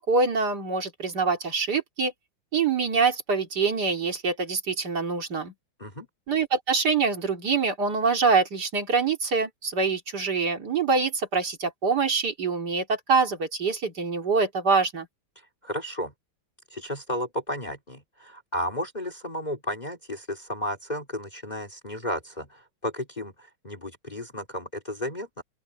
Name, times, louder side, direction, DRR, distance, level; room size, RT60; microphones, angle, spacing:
voice 1, 0.0-2.1 2.5-5.5 6.3-15.1, right 4 dB, 55° right, 3.2 m, -25 dB
voice 2, 15.6-16.1 16.7-25.4, equal, 20° left, 2.7 m, -33 dB
open air
omnidirectional pair, 2.2 m